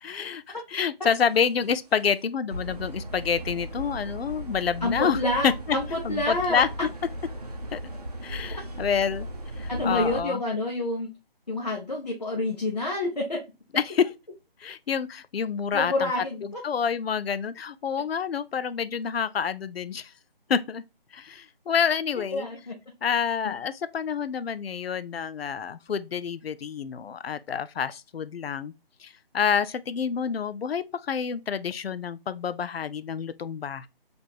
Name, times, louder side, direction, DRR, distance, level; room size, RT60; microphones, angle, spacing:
voice 1, 0.0-5.2 5.4-5.8 6.0-6.7 7.7-7.8 8.2-9.3 9.6-10.4 13.8-14.1 14.6-16.1 16.4-20.1 20.5-20.8 21.1-22.5 23.0-28.7 29.0-33.9, left 7 dB, 75° left, 0.5 m, -28 dB
sound 1, 1.3-1.6 2.0-2.1 2.5-10.2, equal, 40° right, 0.7 m, -37 dB
voice 2, 4.8-6.7 8.5-8.6 9.7-11.1 11.5-13.4 15.7-16.6 22.3-22.7 23.4-23.5, left 2 dB, 45° left, 0.7 m, -28 dB
3.4 x 3.0 x 4.0 m
figure-of-eight pair, 180°, 30 cm